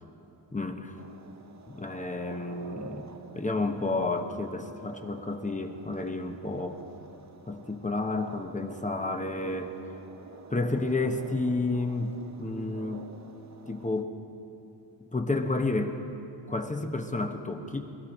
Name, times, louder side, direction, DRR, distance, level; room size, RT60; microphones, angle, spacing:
voice 1, 0.5-0.9 1.7-3.1 3.3-6.8 7.5-9.7 10.5-13.0 13.7-14.1 15.1-16.0 16.5-17.9, left 2 dB, 15° left, 5 dB, 1.0 m, -31 dB
sound 1, 1.0-14.0, right 4 dB, 40° right, 0.8 m, -49 dB
22.0 x 14.0 x 4.3 m, 2.9 s
wide cardioid pair, 105°, 43 cm